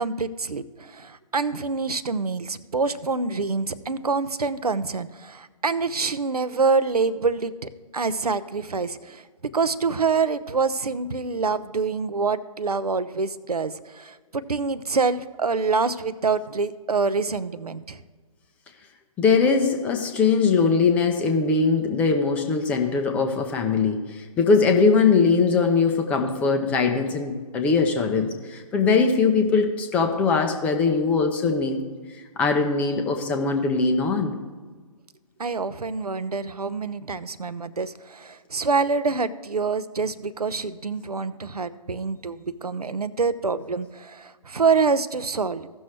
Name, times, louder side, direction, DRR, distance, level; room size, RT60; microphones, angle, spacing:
voice 1, 0.0-9.2 9.5-18.0 35.4-45.7, right 4 dB, 80° right, 15 dB, 0.6 m, -26 dB
voice 2, 19.2-31.8 32.4-34.3, left 4 dB, 5° left, 4 dB, 0.4 m, -21 dB
16.0 x 6.2 x 3.1 m, 1.4 s
figure-of-eight pair, 135°, 19 cm